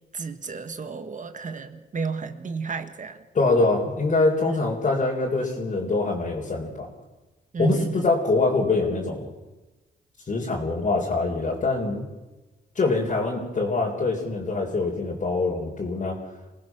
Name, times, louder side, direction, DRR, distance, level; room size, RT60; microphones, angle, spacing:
voice 1, 0.1-3.2 4.4-4.6 7.5-8.1, right 4 dB, 40° right, 8 dB, 1.7 m, -31 dB
voice 2, 3.3-6.9 7.6-9.3 10.3-12.0 12.7-16.2, left 3 dB, 40° left, -3 dB, 4.0 m, -24 dB
27.0 x 18.5 x 6.2 m, 1.1 s
cardioid pair, 105°, 19 cm